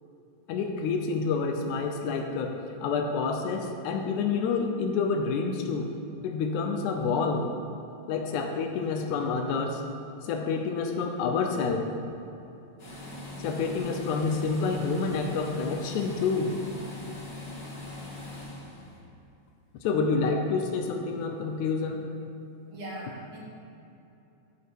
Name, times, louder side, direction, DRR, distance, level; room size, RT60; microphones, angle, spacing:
voice 1, 0.5-5.9 6.2-7.5 8.1-9.8 10.2-11.9 13.4-16.6 19.8-22.0, left 4 dB, 85° left, 4 dB, 2.1 m, -28 dB
sound 1, 12.8-19.0, left 2 dB, 40° left, 2.2 m, -41 dB
voice 2, 22.7-23.4, right 1 dB, 75° right, -6 dB, 3.6 m, -40 dB
13.0 x 4.9 x 4.5 m, 2.8 s
omnidirectional pair, 3.4 m